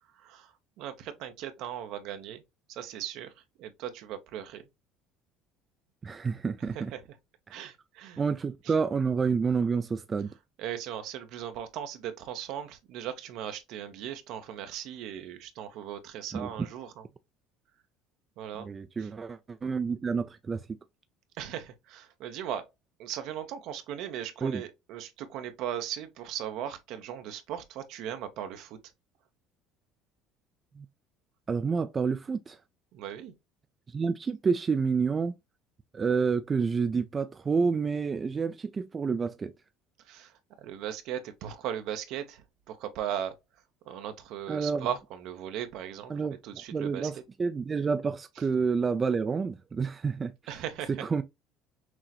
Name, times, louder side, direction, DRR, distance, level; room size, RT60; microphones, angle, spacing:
voice 1, 0.2-2.4 2.7-3.3 3.6-4.6 6.6-7.0 7.5-8.2 8.6-8.7 10.6-17.0 18.4-18.7 19.0-19.1 21.4-22.6 23.0-28.8 32.9-33.3 40.1-43.3 43.9-47.1 50.5-51.2, right 10 dB, 70° right, 0.7 m, -38 dB
voice 2, 6.0-6.9 8.2-10.3 16.3-16.5 18.7-20.8 24.4-24.6 30.8-30.9 31.5-32.6 33.9-35.3 35.9-39.5 44.5-44.9 46.1-46.4 46.7-50.3 50.9-51.2, right 5 dB, 30° right, 0.4 m, -29 dB
6.0 x 2.1 x 2.8 m
supercardioid pair, 95°, 0 cm